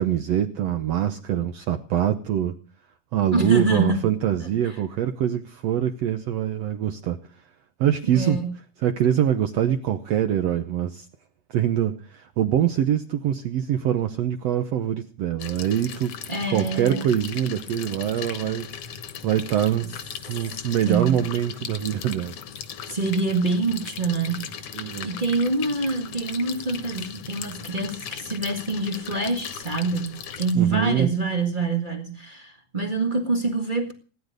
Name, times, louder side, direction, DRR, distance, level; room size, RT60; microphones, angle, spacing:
voice 1, 0.0-2.6 3.1-7.2 7.8-8.4 8.8-11.1 11.5-16.1 16.5-19.0 19.2-19.9 20.3-22.4 24.7-25.1 30.5-31.1, right 10 dB, 75° right, 1.5 m, -24 dB
voice 2, 3.3-4.1 4.4-4.8 8.1-8.5 16.3-17.1 20.8-21.2 22.9-33.9, right 3 dB, 50° right, 0.5 m, -26 dB
sound 1, 15.4-30.5, left 8 dB, 60° left, 1.8 m, -38 dB
18.0 x 11.0 x 6.5 m
omnidirectional pair, 4.1 m